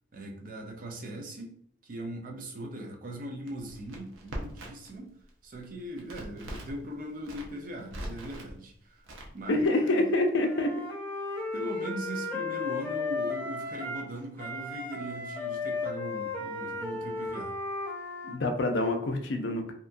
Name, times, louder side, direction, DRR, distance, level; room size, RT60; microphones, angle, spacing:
voice 1, 0.1-1.5 1.8-5.2 5.4-9.0 9.3-10.1 11.5-17.6, right 1 dB, 45° right, 2 dB, 0.5 m, -40 dB
Crackle, 3.5-5.0 5.2-6.8 7.2-8.5 9.0-9.7, right 1 dB, 85° right, 0.6 m, -41 dB
voice 2, 9.5-10.7 18.2-19.7, left 2 dB, 70° left, 5 dB, 0.4 m, -26 dB
Wind instrument woodwind instrument, 10.4-14.1 14.4-18.4, left 3 dB, 10° left, 0.4 m, -35 dB
2.8 x 2.3 x 2.5 m, 0.65 s
head